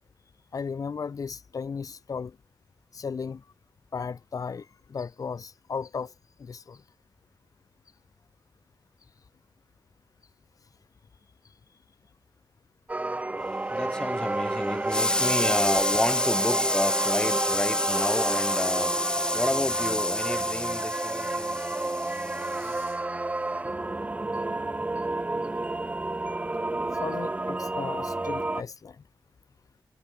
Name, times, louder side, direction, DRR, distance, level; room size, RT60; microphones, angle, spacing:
voice 1, 0.5-2.3 2.9-3.4 3.9-6.1 6.4-6.8 27.0-29.0, left 5 dB, 50° left, 1.7 m, -35 dB
sound 1, 12.9-28.6, right 2 dB, 20° right, 2.2 m, -30 dB
voice 2, 13.7-22.7, left 1 dB, 10° left, 2.3 m, -27 dB
wide cardioid pair, 115°, 7 cm